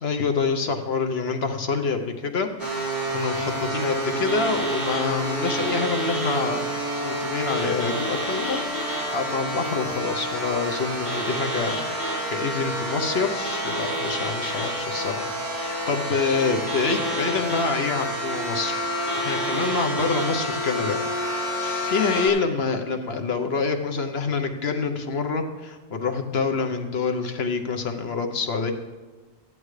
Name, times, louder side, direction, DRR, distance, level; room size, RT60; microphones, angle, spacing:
voice 1, 0.0-6.7 7.0-15.3 15.6-28.7, left 4 dB, 65° left, 5 dB, 1.2 m, -27 dB
sound 1, 2.6-22.3, equal, 40° right, 3.4 m, -28 dB
14.5 x 11.0 x 3.2 m, 1.3 s
omnidirectional pair, 1.2 m